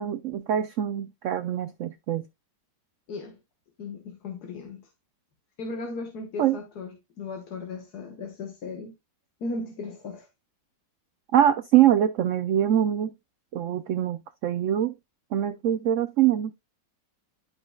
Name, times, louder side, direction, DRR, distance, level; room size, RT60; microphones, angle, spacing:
voice 1, 0.0-2.2 6.4-6.6 11.3-13.1 13.5-14.9 15.3-16.5, right 11 dB, 80° right, 0.6 m, -23 dB
voice 2, 3.1-3.4 3.8-4.9 5.6-8.9 9.4-10.3, left 3 dB, 60° left, 1.7 m, -36 dB
11.5 x 5.5 x 2.3 m
omnidirectional pair, 1.9 m